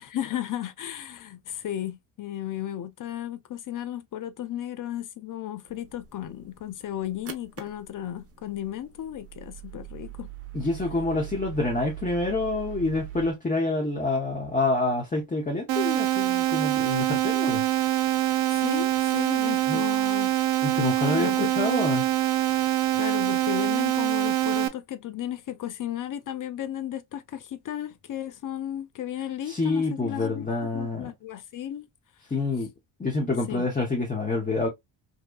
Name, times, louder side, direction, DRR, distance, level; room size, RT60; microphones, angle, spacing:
voice 1, 0.1-10.3 18.5-20.3 21.1-21.5 22.9-30.5 30.7-31.9 33.5-33.7, left 11 dB, 40° left, 0.5 m, -34 dB
sound 1, 5.7-13.3, right 12 dB, 30° right, 0.7 m, -42 dB
voice 2, 10.5-17.6 19.7-19.9 20.6-22.0 29.4-31.1 32.3-32.7 33.0-34.7, left 3 dB, 15° left, 0.9 m, -27 dB
sound 2, 15.7-24.7, right 13 dB, 65° right, 0.6 m, -24 dB
2.7 x 2.3 x 2.2 m
hypercardioid pair, 50°, 49 cm